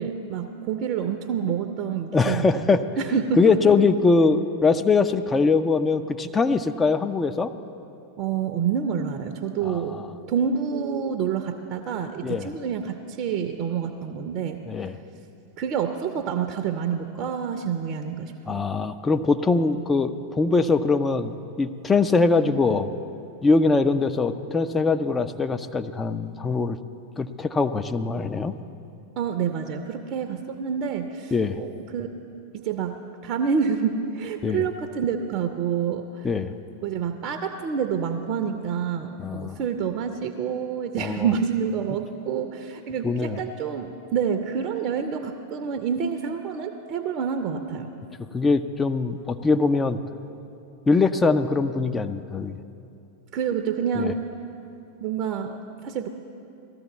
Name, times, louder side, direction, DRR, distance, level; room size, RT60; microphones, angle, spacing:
voice 1, 0.0-2.7 3.0-3.6 8.2-10.0 10.3-14.6 15.6-18.7 29.2-32.1 32.5-33.0 33.2-36.3 36.8-47.9 53.3-54.2 55.0-56.1, right 7 dB, 40° right, 7 dB, 0.6 m, -28 dB
voice 2, 2.1-2.8 3.4-7.5 9.6-10.1 12.2-12.5 14.7-15.0 18.5-22.9 23.4-26.8 27.2-28.5 31.3-31.6 34.4-34.6 36.2-36.5 39.2-39.6 41.0-41.3 43.0-43.4 48.3-50.0 50.9-52.6 54.0-54.1, left 4 dB, 15° left, 8 dB, 0.5 m, -22 dB
18.5 x 13.5 x 3.1 m, 2.7 s
figure-of-eight pair, 90°, 0 cm